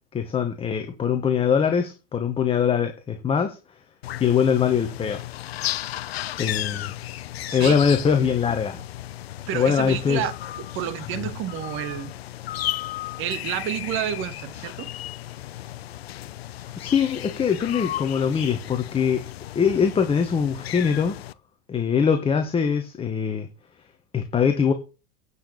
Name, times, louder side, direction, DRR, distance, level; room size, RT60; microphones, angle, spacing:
voice 1, 0.1-3.6 4.2-5.2 6.4-6.9 7.5-8.8 9.5-10.3 11.1-11.2 16.8-19.2 19.5-21.2 21.7-23.5 24.1-24.7, left 7 dB, 20° left, 1.6 m, -22 dB
sound 1, 4.0-21.3, left 13 dB, 90° left, 0.8 m, -34 dB
voice 2, 7.5-7.8 9.5-10.3 10.6-12.1 13.2-14.9, right 11 dB, 40° right, 1.8 m, -30 dB
9.4 x 6.4 x 8.7 m
supercardioid pair, 130°, 30 cm